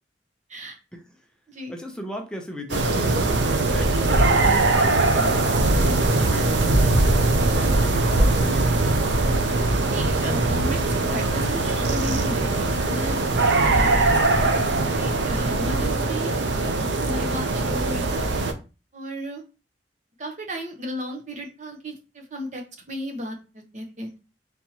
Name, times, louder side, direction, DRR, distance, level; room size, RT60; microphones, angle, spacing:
voice 1, 1.7-3.4 3.7-8.9 13.4-13.6 15.6-15.7, equal, 5° left, 2 dB, 0.6 m, -36 dB
sound 1, 2.7-18.5, right 2 dB, 85° right, 0.7 m, -21 dB
voice 2, 9.9-13.2 13.6-16.3 17.0-18.2 18.9-19.4 20.2-24.1, equal, 45° right, 3 dB, 0.9 m, -35 dB
4.2 x 3.5 x 2.8 m, 0.31 s
head